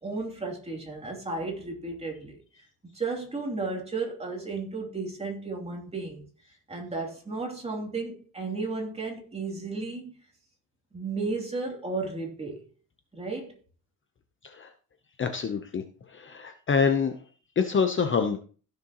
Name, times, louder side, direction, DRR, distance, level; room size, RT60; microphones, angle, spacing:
voice 1, 0.0-2.4 2.8-6.3 6.7-10.2 10.9-12.6 13.1-13.6, right 3 dB, 15° right, 2.9 m, -34 dB
voice 2, 15.2-15.8 16.1-17.1 17.6-18.4, left 6 dB, 30° left, 0.9 m, -26 dB
15.5 x 6.8 x 3.0 m
cardioid pair, 140°, 38 cm